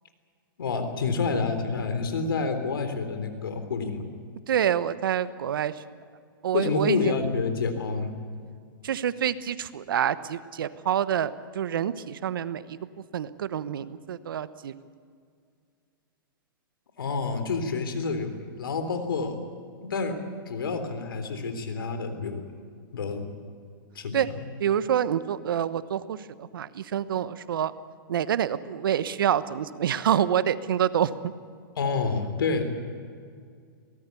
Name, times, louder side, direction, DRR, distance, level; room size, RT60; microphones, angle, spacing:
voice 1, 0.6-4.0 6.5-8.1 17.0-18.3 18.6-19.4 19.8-20.2 20.5-22.4 22.9-23.2 23.9-24.5 31.8-32.6, left 4 dB, 80° left, 8 dB, 3.7 m, -28 dB
voice 2, 4.5-5.7 6.4-7.1 8.8-12.8 13.1-14.7 24.1-24.3 24.6-27.7 28.1-31.3, right 9 dB, 75° right, 14 dB, 1.2 m, -27 dB
22.5 x 18.5 x 8.4 m, 2.2 s
hypercardioid pair, 125°, 12 cm